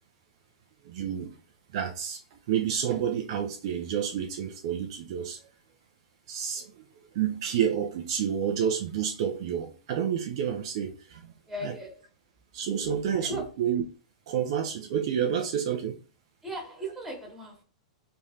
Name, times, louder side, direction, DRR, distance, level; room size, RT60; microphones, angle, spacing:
voice 1, 0.8-1.4 1.7-5.4 6.3-6.9 7.1-11.3 11.6-11.7 12.5-13.8 14.3-16.0, right 8 dB, 60° right, 0.6 m, -29 dB
voice 2, 11.5-12.1 13.2-13.5 16.4-17.6, equal, 5° right, 1.8 m, -37 dB
3.4 x 3.2 x 2.8 m
hypercardioid pair, 110°, 3 cm